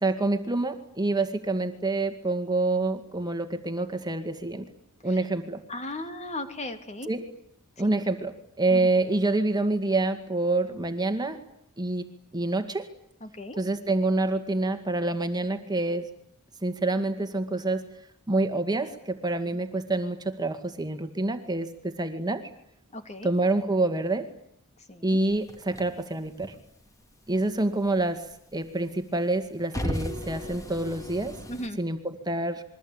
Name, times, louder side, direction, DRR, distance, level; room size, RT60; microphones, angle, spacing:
voice 1, 0.0-4.7 5.0-5.6 7.1-7.3 7.8-11.4 11.8-12.1 12.3-12.9 13.6-16.1 16.6-17.9 18.3-22.5 23.2-24.3 25.0-26.5 27.3-28.2 28.5-31.4 31.8-32.6, right 2 dB, 20° right, 7 dB, 2.2 m, -27 dB
voice 2, 5.7-7.1 7.8-7.9 8.7-8.9 13.2-13.6 22.9-23.3 24.9-25.2 31.5-31.8, left 1 dB, 30° left, 7 dB, 3.1 m, -37 dB
sound 1, 25.3-27.0 27.3-28.7 29.1-31.7, equal, 15° left, 3.0 m, -36 dB
28.0 x 23.0 x 9.0 m, 0.72 s
head